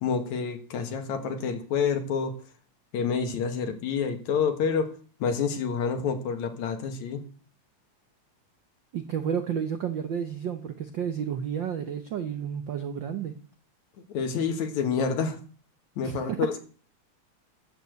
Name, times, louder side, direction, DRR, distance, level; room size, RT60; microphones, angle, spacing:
voice 1, 0.0-2.3 2.9-4.9 5.2-7.2 14.1-15.4 16.0-16.6, left 6 dB, 75° left, 7 dB, 2.9 m, -28 dB
voice 2, 8.9-13.3 16.0-16.5, right 8 dB, 70° right, 8 dB, 1.1 m, -31 dB
13.5 x 5.5 x 7.9 m, 0.41 s
omnidirectional pair, 3.4 m